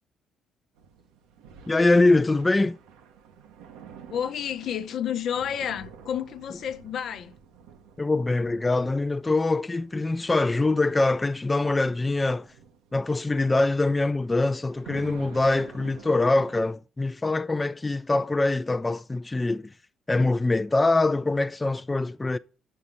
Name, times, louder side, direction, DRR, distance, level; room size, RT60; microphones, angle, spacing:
sound 1, 0.7-16.7, right 7 dB, 80° right, 0.9 m, -49 dB
voice 1, 1.7-2.8 8.0-12.5 12.9-19.7 20.1-22.4, left 2 dB, 20° left, 0.4 m, -23 dB
voice 2, 4.1-7.3, left 9 dB, 65° left, 0.7 m, -30 dB
6.8 x 5.6 x 7.3 m
hypercardioid pair, 55°, 0 cm